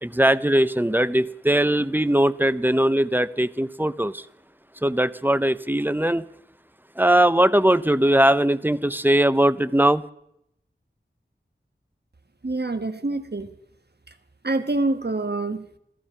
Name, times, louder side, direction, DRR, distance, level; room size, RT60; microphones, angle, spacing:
voice 1, 0.0-4.1 4.8-6.2 7.0-10.0, right 1 dB, 10° right, 0.6 m, -20 dB
voice 2, 12.4-13.5 14.4-15.6, right 2 dB, 55° right, 1.3 m, -26 dB
15.0 x 14.5 x 5.7 m
wide cardioid pair, 45°, 20 cm